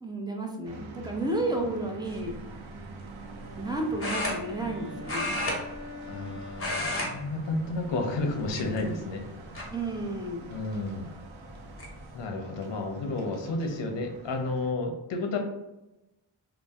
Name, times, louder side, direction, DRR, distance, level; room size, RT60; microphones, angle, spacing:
voice 1, 0.0-2.4 3.6-5.4 9.7-10.6, right 2 dB, 10° right, 1 dB, 0.4 m, -32 dB
sound 1, 0.6-14.7, right 3 dB, 70° right, 0.6 m, -46 dB
sound 2, 2.1-2.3 4.0-4.8 5.0-6.3 6.5-7.1 7.4-7.7 8.4-9.0 9.5-9.6 11.1-11.2 11.5-11.9, left 1 dB, 30° left, 0.8 m, -32 dB
Wind instrument woodwind instrument, 3.1-7.7, left 2 dB, 35° right, 1.2 m, -45 dB
voice 2, 6.1-9.2 10.5-11.1 12.1-15.4, left 2 dB, 60° left, 3 dB, 0.6 m, -31 dB
2.6 x 2.0 x 3.2 m, 0.97 s
wide cardioid pair, 75°, 49 cm